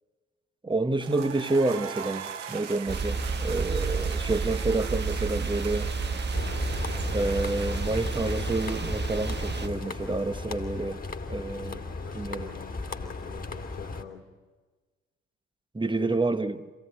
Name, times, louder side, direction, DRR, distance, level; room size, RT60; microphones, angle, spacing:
voice 1, 0.6-5.9 7.1-11.0 11.3-11.8 12.1-12.5 15.7-16.6, right 2 dB, 15° right, 1.4 m, -29 dB
sound 1, 1.0-10.8, right 8 dB, 90° right, 0.8 m, -42 dB
sound 2, 2.9-9.7, right 4 dB, 30° right, 1.7 m, -30 dB
sound 3, 6.3-14.0, left 3 dB, 25° left, 2.7 m, -36 dB
voice 2, 11.3-14.2 15.9-16.2, left 8 dB, 90° left, 1.5 m, -46 dB
26.5 x 17.0 x 10.0 m
hypercardioid pair, 45°, 35 cm